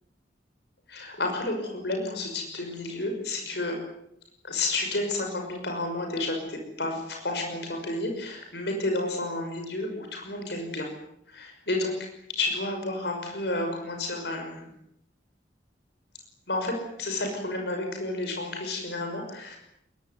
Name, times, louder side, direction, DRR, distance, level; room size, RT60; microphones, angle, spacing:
voice 1, 0.9-3.8 4.4-10.9 11.3-11.9 12.4-14.7 16.5-16.7 17.0-19.6, left 2 dB, 65° left, 3 dB, 5.9 m, -31 dB
22.5 x 21.5 x 9.6 m, 0.77 s
head